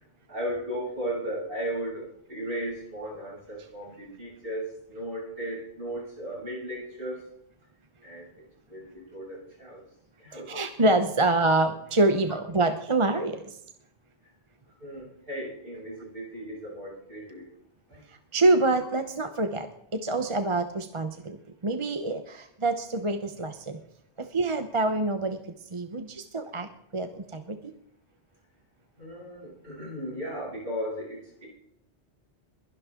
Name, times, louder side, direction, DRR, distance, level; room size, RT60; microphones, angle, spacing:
voice 1, 0.3-7.3 8.0-8.4 8.7-9.8 10.2-10.5 12.3-12.4 14.8-17.5 17.9-18.0 29.0-31.5, equal, 55° right, -4 dB, 8.1 m, -36 dB
voice 2, 10.5-13.4 18.3-19.7 20.0-21.4 21.6-23.5 24.2-25.4 25.7-26.7 26.9-27.6, right 2 dB, 30° right, 8 dB, 0.9 m, -25 dB
22.0 x 11.0 x 3.8 m, 0.72 s
omnidirectional pair, 1.2 m